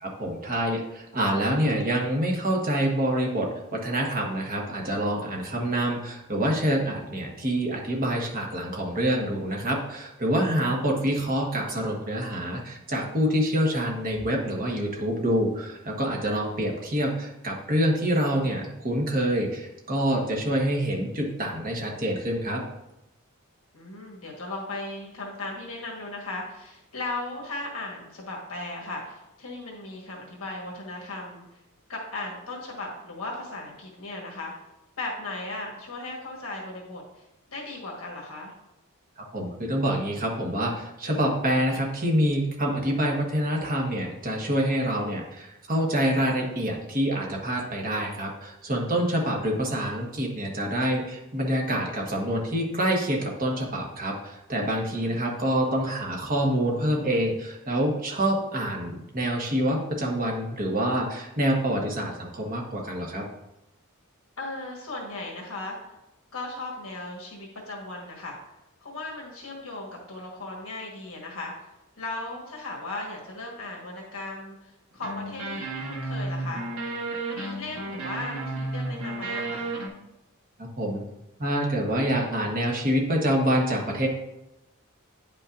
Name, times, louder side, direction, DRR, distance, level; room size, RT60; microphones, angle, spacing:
voice 1, 0.0-22.6 39.3-63.2 80.8-81.0 81.4-84.1, equal, 40° right, 0 dB, 1.3 m, -26 dB
voice 2, 10.5-10.9 23.7-31.4 31.9-34.5 35.0-37.2 37.5-38.5 49.0-49.4 55.0-55.2 64.4-65.7 66.3-68.4 68.8-71.7 71.9-76.6 77.3-79.7, left 2 dB, 70° left, -2 dB, 1.5 m, -37 dB
sound 1, 75.0-79.9, right 2 dB, 90° right, 1.2 m, -32 dB
9.2 x 5.5 x 2.6 m, 0.92 s
head